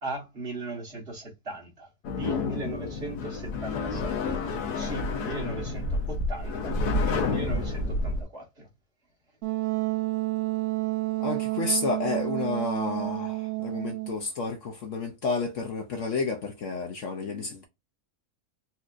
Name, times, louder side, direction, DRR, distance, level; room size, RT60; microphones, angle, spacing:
voice 1, 0.0-4.2 4.7-8.7, right 2 dB, 40° right, 1.6 m, -38 dB
sound 1, 2.0-8.2, left 3 dB, 80° left, 1.3 m, -29 dB
Wind instrument woodwind instrument, 9.4-14.2, right 20 dB, 65° right, 0.8 m, -30 dB
voice 2, 11.2-17.6, left 3 dB, 60° left, 0.9 m, -31 dB
4.2 x 2.8 x 2.4 m
omnidirectional pair, 1.7 m